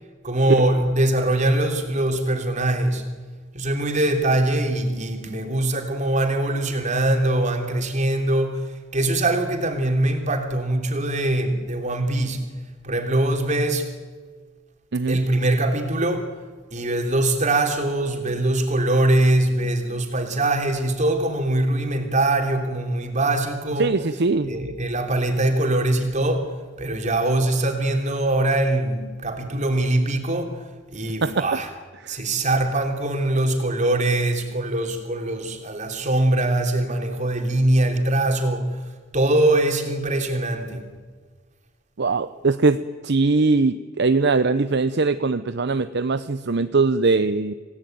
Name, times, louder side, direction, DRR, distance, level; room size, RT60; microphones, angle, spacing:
voice 1, 0.2-3.0 3.5-8.7 8.9-12.4 12.8-13.9 15.1-16.3 16.7-24.0 24.5-31.7 32.1-38.8 39.1-40.8, right 1 dB, 35° right, 3.3 m, -22 dB
voice 2, 23.8-24.7 31.2-31.4 32.0-32.2 42.0-47.5, right 3 dB, 60° right, 0.7 m, -21 dB
27.0 x 18.0 x 9.3 m
head